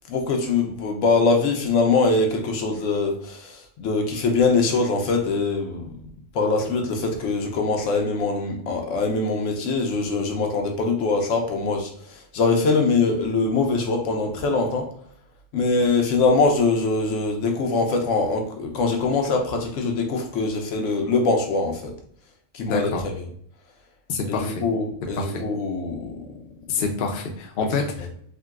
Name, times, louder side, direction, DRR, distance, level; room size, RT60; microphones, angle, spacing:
voice 1, 0.1-6.1 6.3-14.9 15.5-22.0 22.5-23.1 24.3-26.3 27.6-27.7, left 3 dB, 80° left, 2 dB, 1.0 m, -23 dB
voice 2, 22.7-23.0 24.1-24.6 25.2-25.4 26.7-28.1, left 4 dB, 55° left, 2 dB, 0.6 m, -27 dB
3.7 x 2.2 x 2.3 m, 0.64 s
omnidirectional pair, 1.3 m